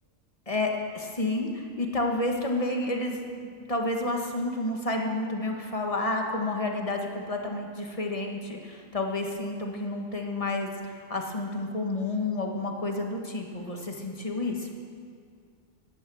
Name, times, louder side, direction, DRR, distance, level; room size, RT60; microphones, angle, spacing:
voice 1, 0.5-3.2 3.4-14.7, left 2 dB, 30° left, 1 dB, 1.6 m, -30 dB
17.0 x 10.5 x 6.3 m, 2.2 s
omnidirectional pair, 1.3 m